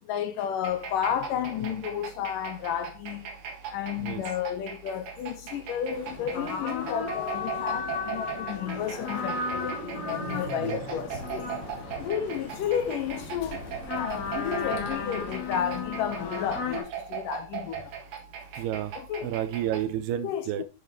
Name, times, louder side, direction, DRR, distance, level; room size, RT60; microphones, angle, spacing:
voice 1, 0.1-3.3 3.7-11.6 11.9-17.9 19.0-19.3 20.2-20.6, left 9 dB, 75° left, 2.2 m, -32 dB
sound 1, 0.6-19.9, right 7 dB, 65° right, 2.9 m, -40 dB
sound 2, 5.4-15.2 15.5-15.6, right 3 dB, 45° right, 2.5 m, -47 dB
sound 3, 5.9-16.8, left 4 dB, 55° left, 2.4 m, -35 dB
voice 2, 18.6-18.9 19.2-20.6, right 11 dB, 85° right, 2.9 m, -30 dB
8.7 x 7.4 x 3.1 m
omnidirectional pair, 4.5 m